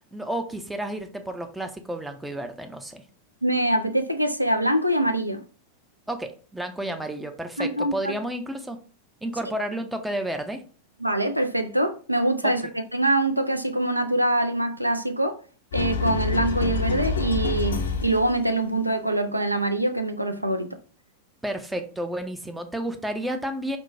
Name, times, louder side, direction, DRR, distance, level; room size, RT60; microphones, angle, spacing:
voice 1, 0.1-3.0 6.1-8.8 9.2-10.6 12.4-12.5 21.4-23.8, right 1 dB, 5° right, 0.4 m, -31 dB
voice 2, 3.4-5.4 7.6-8.1 11.0-15.4 15.7-20.8, right 1 dB, 90° right, 0.3 m, -24 dB
sound 1, 15.7-18.4, left 4 dB, 65° left, 0.4 m, -27 dB
4.4 x 2.1 x 2.6 m
figure-of-eight pair, 90°, 0 cm